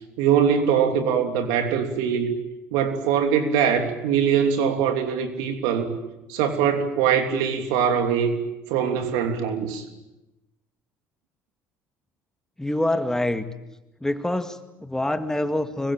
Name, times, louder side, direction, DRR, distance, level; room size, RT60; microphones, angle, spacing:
voice 1, 0.2-2.3 2.7-5.9 6.3-8.4 8.7-9.8, right 7 dB, 80° right, 6 dB, 3.1 m, -22 dB
voice 2, 12.6-13.5 14.0-15.9, left 1 dB, 10° left, 8 dB, 2.1 m, -26 dB
25.5 x 22.0 x 8.9 m, 0.97 s
supercardioid pair, 70°, 7 cm